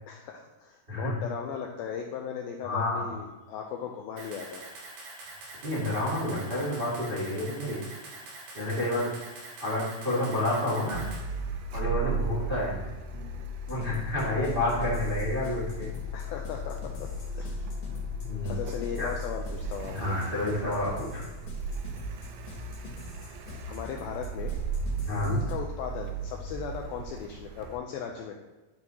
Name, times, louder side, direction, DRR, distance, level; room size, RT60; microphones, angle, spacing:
voice 1, 0.1-5.4 12.0-12.1 16.1-17.7 18.5-20.2 23.7-24.6 25.0-28.3, left 7 dB, 90° left, 2 dB, 2.1 m, -38 dB
voice 2, 2.6-3.1 5.6-7.8 8.5-9.1 9.6-11.1 11.7-12.8 13.7-15.9 18.2-18.5 19.0-19.1 19.9-21.2 25.1-25.4, left 1 dB, 45° right, -6 dB, 0.6 m, -29 dB
Camera, 4.2-11.2, right 2 dB, 60° right, 3.3 m, -44 dB
Car, 10.9-27.8, right 2 dB, 80° right, 2.8 m, -36 dB
sound 1, 13.7-25.5, left 3 dB, 65° left, 3.1 m, -43 dB
10.5 x 6.1 x 2.8 m, 1.2 s
omnidirectional pair, 4.9 m